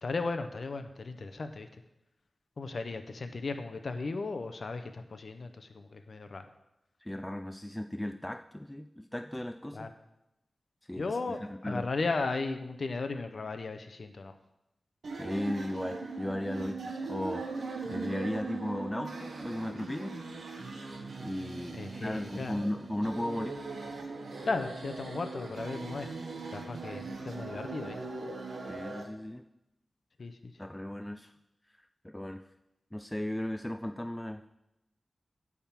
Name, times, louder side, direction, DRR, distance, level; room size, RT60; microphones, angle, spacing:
voice 1, 0.0-1.7 2.6-6.5 9.7-9.9 11.0-14.4 17.9-18.0 21.7-22.5 24.4-26.1 26.5-28.0 30.2-30.5, left 3 dB, 65° left, 7 dB, 0.7 m, -36 dB
voice 2, 7.0-9.9 10.9-11.9 15.2-17.5 17.9-20.1 21.2-23.6 28.7-29.4 30.6-31.3 32.0-32.4 32.9-34.5, left 1 dB, 10° left, 6 dB, 0.4 m, -36 dB
sound 1, 15.0-29.0, right 3 dB, 85° right, 1.1 m, -40 dB
10.0 x 3.7 x 7.3 m, 0.86 s
cardioid pair, 55°, 0 cm